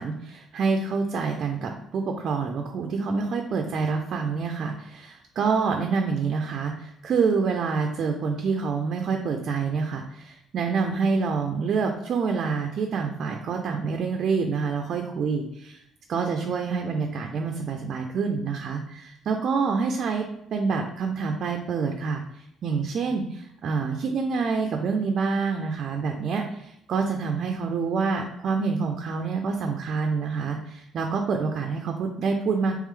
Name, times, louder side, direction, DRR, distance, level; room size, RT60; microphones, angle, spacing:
voice 1, 0.0-15.8 16.1-20.2 20.5-32.8, right 5 dB, 45° right, 3 dB, 0.4 m, -27 dB
3.6 x 3.0 x 3.3 m, 0.77 s
cardioid pair, 155°, 0 cm